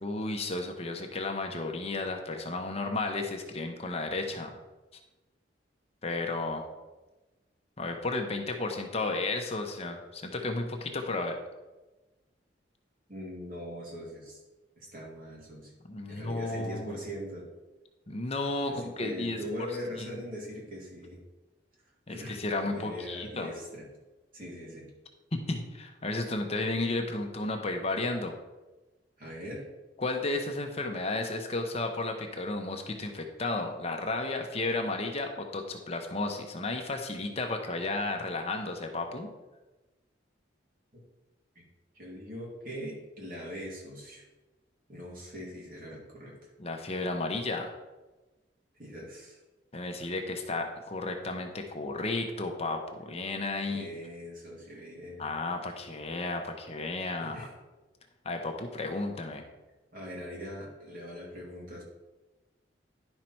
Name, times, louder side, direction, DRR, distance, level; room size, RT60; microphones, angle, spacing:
voice 1, 0.0-4.6 6.0-6.6 7.8-11.4 15.9-16.9 18.1-19.4 20.0-20.1 22.1-23.5 25.3-28.4 30.0-39.3 46.6-47.7 49.7-53.9 55.2-57.5 58.2-59.4, left 2 dB, 35° left, 4 dB, 0.8 m, -33 dB
voice 2, 13.1-14.4 14.8-15.7 16.1-17.5 18.7-21.2 22.1-23.8 24.3-24.9 29.2-29.7 40.9-41.0 41.9-44.2 44.9-46.5 48.8-49.4 53.6-55.3 57.2-57.5 59.9-61.8, equal, 50° right, -3 dB, 2.6 m, -41 dB
10.5 x 5.8 x 4.5 m, 1.1 s
head